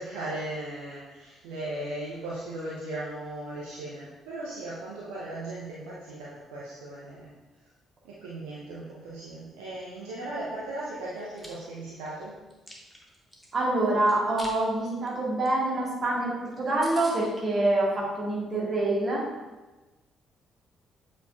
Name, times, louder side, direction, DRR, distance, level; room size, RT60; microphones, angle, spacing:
voice 1, 0.0-7.3 8.0-12.4, right 1 dB, 70° right, -6 dB, 0.7 m, -37 dB
Chewing mastication, 11.2-11.5 12.0-13.5 14.1-14.6 14.9-15.1 15.4-15.5 15.8-15.9 16.2-16.3 16.5-16.6 16.8-17.2, equal, ahead, 1.3 m, -44 dB
voice 2, 13.5-19.2, right 2 dB, 40° right, -4 dB, 1.9 m, -26 dB
7.9 x 4.8 x 2.5 m, 1.1 s
figure-of-eight pair, 45°, 0 cm